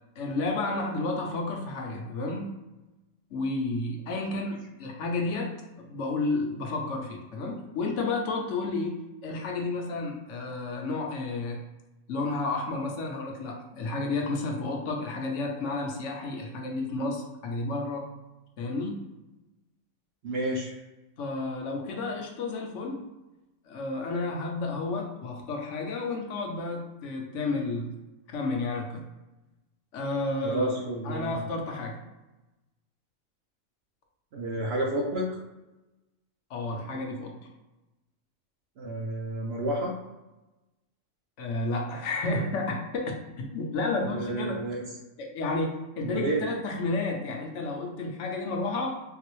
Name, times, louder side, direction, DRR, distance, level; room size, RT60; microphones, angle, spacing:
voice 1, 0.2-2.5 3.3-11.6 12.1-18.1 18.6-19.1 21.2-23.0 23.7-27.9 28.3-29.0 29.9-30.8 31.0-32.0 36.5-37.4 41.4-44.6 45.2-49.0, left 3 dB, 65° left, 1 dB, 0.9 m, -31 dB
voice 2, 20.2-20.7 30.4-31.3 34.3-35.3 38.8-39.9 44.0-44.8 46.0-46.4, right 1 dB, 60° right, -1 dB, 0.7 m, -30 dB
3.9 x 2.0 x 3.0 m, 1.0 s
omnidirectional pair, 1.4 m